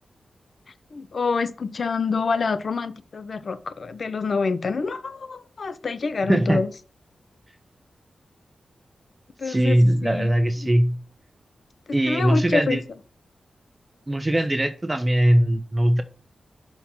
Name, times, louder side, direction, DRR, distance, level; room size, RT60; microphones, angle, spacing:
voice 1, 0.9-6.7 9.4-10.3 11.9-12.8, left 4 dB, 60° left, 0.6 m, -27 dB
voice 2, 6.3-6.6 9.4-11.0 11.9-12.8 14.1-16.0, right 1 dB, 15° right, 0.6 m, -20 dB
5.8 x 4.4 x 5.5 m
wide cardioid pair, 95°, 0 cm